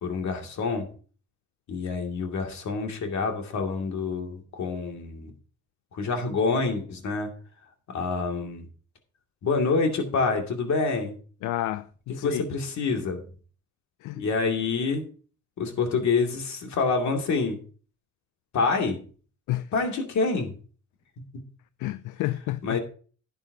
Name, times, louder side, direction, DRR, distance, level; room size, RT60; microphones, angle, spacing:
voice 1, 0.0-0.9 1.7-5.3 5.9-7.3 7.9-8.7 9.4-11.1 12.1-13.2 14.1-15.0 15.6-17.6 18.5-19.0 19.7-20.5 22.6-22.8, left 4 dB, 65° left, 2.4 m, -27 dB
voice 2, 11.4-12.4 14.0-14.2 19.5-19.7 21.8-22.8, left 15 dB, 85° left, 0.5 m, -30 dB
11.5 x 9.4 x 2.8 m
cardioid pair, 90°, 30 cm